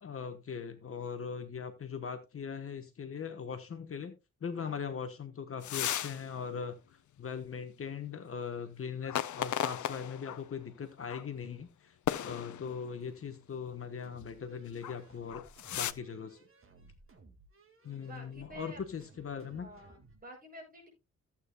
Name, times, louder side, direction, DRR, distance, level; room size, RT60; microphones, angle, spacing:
voice 1, 0.0-4.1 4.4-6.8 7.2-12.0 12.2-15.4 15.7-16.5 17.8-19.7, left 6 dB, 50° left, 7 dB, 1.2 m, -40 dB
sound 1, 5.6-6.2 6.6-6.7 9.0-10.4 11.1-11.3 12.1-12.9 14.7-15.0 15.3-15.9, left 11 dB, 85° left, 0.6 m, -35 dB
voice 2, 12.1-12.5 18.0-18.8 19.5-20.9, right 1 dB, 30° right, 0 dB, 6.8 m, -51 dB
sound 2, 14.0-20.2, right 3 dB, 45° right, 2.0 m, -59 dB
15.0 x 8.5 x 2.3 m, 0.24 s
wide cardioid pair, 155°, 29 cm